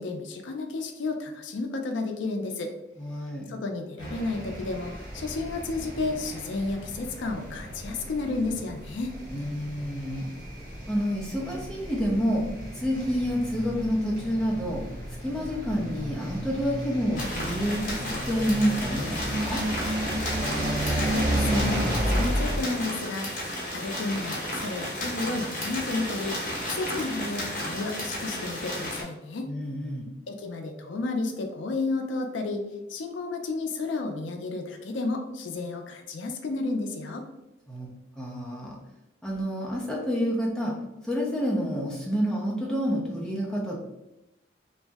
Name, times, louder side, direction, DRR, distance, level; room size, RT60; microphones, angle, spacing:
voice 1, 0.0-2.7 3.5-9.1 20.8-26.3 26.6-29.5 30.3-32.6 32.9-37.2, left 3 dB, 80° left, 5 dB, 0.4 m, -32 dB
voice 2, 3.0-3.5 9.3-10.4 10.9-12.4 12.7-14.8 15.2-19.6 29.5-30.1 37.7-37.9 38.2-38.8 39.2-40.7 41.0-43.9, equal, 5° left, -4 dB, 0.5 m, -28 dB
sound 1, 4.0-22.6, equal, 45° right, 0.8 m, -32 dB
sound 2, 17.2-29.0, left 1 dB, 45° left, 0.8 m, -33 dB
2.6 x 2.0 x 3.4 m, 0.93 s
head